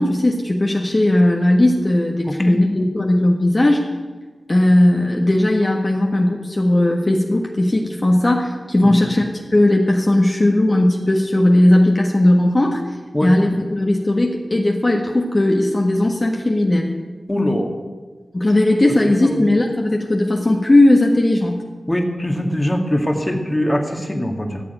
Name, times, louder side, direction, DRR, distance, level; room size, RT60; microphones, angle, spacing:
voice 1, 0.0-3.8 4.5-12.8 13.2-16.9 18.3-21.6, left 1 dB, 40° left, 0 dB, 1.6 m, -17 dB
voice 2, 17.3-17.7 19.2-19.4 21.9-24.6, left 1 dB, 20° left, 3 dB, 1.9 m, -21 dB
13.5 x 7.8 x 9.2 m, 1.4 s
wide cardioid pair, 60°, 0 cm